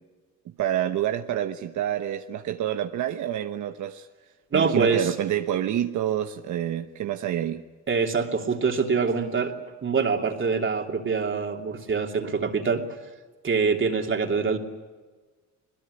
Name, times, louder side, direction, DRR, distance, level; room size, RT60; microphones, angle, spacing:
voice 1, 0.6-4.1 4.5-7.6, right 11 dB, 75° right, 1.1 m, -28 dB
voice 2, 4.5-5.1 7.9-9.6 9.8-12.8 13.4-14.6, right 5 dB, 40° right, 3.0 m, -24 dB
21.5 x 21.5 x 9.9 m
cardioid pair, 90°, 30 cm